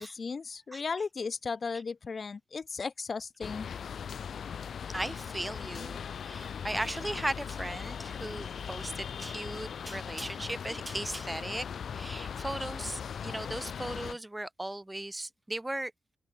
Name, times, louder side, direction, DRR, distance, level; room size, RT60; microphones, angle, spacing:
voice 1, 0.0-3.7, left 5 dB, 40° left, 2.6 m, -36 dB
sound 1, 3.4-14.1, left 7 dB, 65° left, 4.4 m, -39 dB
voice 2, 4.9-11.7 11.9-15.9, right 1 dB, 10° right, 3.5 m, -37 dB
open air
wide cardioid pair, 140°, 0 cm